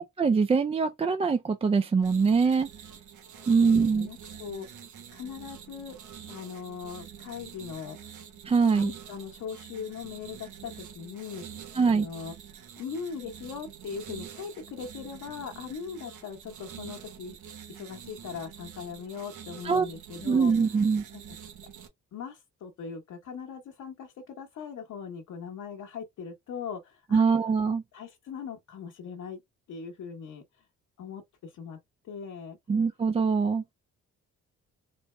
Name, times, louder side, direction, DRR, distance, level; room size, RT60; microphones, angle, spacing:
voice 1, 0.0-2.7 3.5-4.1 8.5-8.9 11.8-12.1 19.6-19.9 20.3-21.0 27.1-27.8 32.7-33.6, right 5 dB, 20° right, 0.4 m, -23 dB
sound 1, 2.0-21.9, right 8 dB, 80° right, 1.1 m, -46 dB
voice 2, 3.3-4.8 5.1-6.0 6.3-8.0 8.7-11.4 11.7-12.3 12.8-17.4 17.7-21.2 22.1-27.2 27.9-29.4 29.7-30.6 31.0-31.8 32.0-32.6, left 6 dB, 70° left, 1.2 m, -40 dB
4.3 x 2.1 x 3.2 m
cardioid pair, 90°, 30 cm